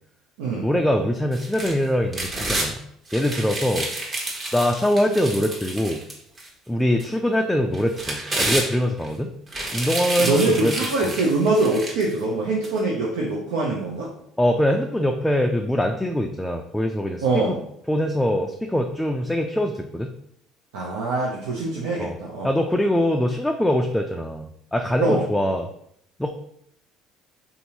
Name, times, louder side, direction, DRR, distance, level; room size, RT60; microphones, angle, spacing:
voice 1, 0.6-2.8 3.1-3.9 4.5-6.0 6.7-9.3 9.7-10.7 11.0-11.1 14.4-17.6 17.9-20.1 22.0-22.1 22.4-25.7 26.2-26.3, equal, 5° left, 3 dB, 0.3 m, -23 dB
sound 1, 1.3-2.7 3.1-6.5 7.0-7.1 7.7-9.1 9.5-12.1 12.6-12.7, right 2 dB, 35° right, 1.1 m, -29 dB
voice 2, 10.2-14.1 17.2-17.6 20.7-22.5 25.0-25.2, right 2 dB, 85° right, -3 dB, 0.6 m, -23 dB
3.7 x 2.6 x 2.9 m, 0.70 s
hypercardioid pair, 70°, 0 cm